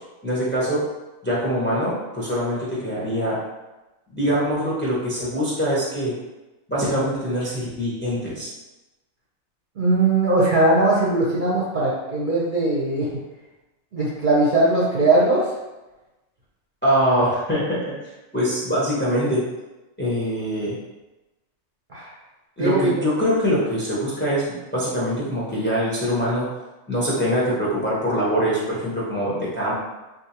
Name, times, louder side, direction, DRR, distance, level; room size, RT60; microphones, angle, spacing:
voice 1, 0.2-0.8 1.2-3.4 4.1-6.1 6.7-8.5 16.8-17.9 18.3-19.4 20.0-20.7 22.6-24.4 24.7-26.5 26.9-29.7, equal, 10° left, -6 dB, 0.5 m, -23 dB
voice 2, 9.8-13.1 13.9-15.4 21.9-22.1 22.6-23.1, right 2 dB, 50° right, -6 dB, 0.6 m, -20 dB
3.7 x 2.6 x 2.9 m, 1.1 s
omnidirectional pair, 1.4 m